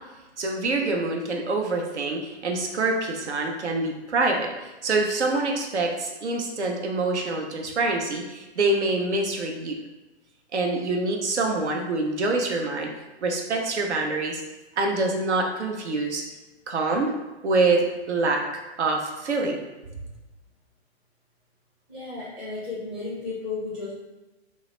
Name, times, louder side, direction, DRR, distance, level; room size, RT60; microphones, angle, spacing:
voice 1, 0.4-9.8 10.5-12.9 13.2-14.4 14.8-16.2 16.7-17.1 17.4-18.4 18.8-19.6, right 3 dB, 85° right, 1 dB, 0.6 m, -25 dB
voice 2, 21.9-23.9, left 4 dB, 5° right, -10 dB, 0.3 m, -33 dB
2.2 x 2.0 x 2.9 m, 1.1 s
figure-of-eight pair, 115°, 33 cm